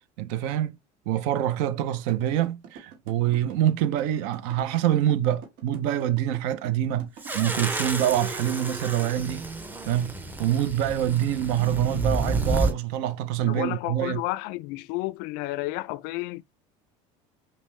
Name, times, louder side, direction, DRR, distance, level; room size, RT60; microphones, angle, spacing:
voice 1, 0.2-0.7 1.1-9.4 9.9-14.2, right 11 dB, 80° right, 0.6 m, -25 dB
sound 1, 2.1-7.4, right 6 dB, 60° right, 1.3 m, -44 dB
sound 2, 7.2-12.7, right 2 dB, 10° right, 0.6 m, -30 dB
voice 2, 13.4-16.4, left 19 dB, 75° left, 0.4 m, -31 dB
5.2 x 2.0 x 3.2 m
supercardioid pair, 120°, 15 cm